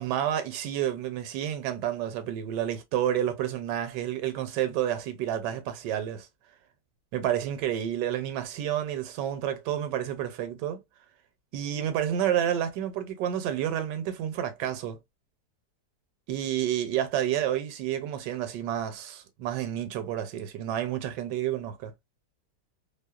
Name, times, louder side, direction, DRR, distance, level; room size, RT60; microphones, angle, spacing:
voice 1, 0.0-6.3 7.1-10.8 11.5-15.0 16.3-21.9, right 10 dB, 85° right, 1.2 m, -30 dB
2.9 x 2.0 x 2.2 m
omnidirectional pair, 1.8 m